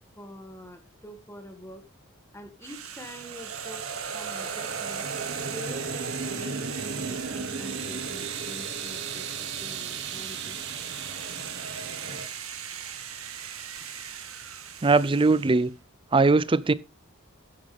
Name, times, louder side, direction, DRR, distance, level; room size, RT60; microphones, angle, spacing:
voice 1, 0.0-1.8 2.3-5.0 5.5-9.3 9.6-10.7, equal, 10° left, 2.1 m, -45 dB
sound 1, 2.6-15.7, right 9 dB, 75° right, 1.9 m, -38 dB
sound 2, 3.0-12.3, right 4 dB, 55° right, 1.3 m, -36 dB
voice 2, 14.8-15.7 16.1-16.7, right 3 dB, 25° right, 0.5 m, -20 dB
12.0 x 10.5 x 3.5 m
head